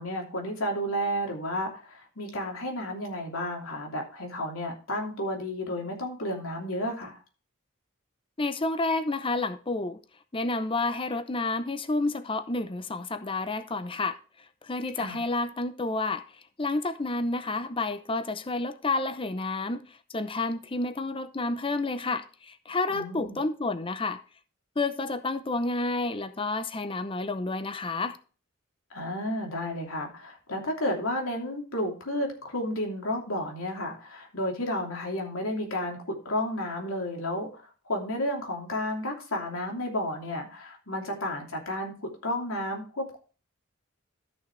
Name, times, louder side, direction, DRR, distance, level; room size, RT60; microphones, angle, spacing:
voice 1, 0.0-7.2 15.0-15.2 22.9-23.4 28.9-41.9 42.2-43.2, left 1 dB, 75° left, 3.0 m, -32 dB
voice 2, 8.4-10.0 10.3-14.2 14.6-16.2 16.6-24.2 24.8-28.2, left 2 dB, 25° left, 0.6 m, -30 dB
13.5 x 6.4 x 3.2 m
head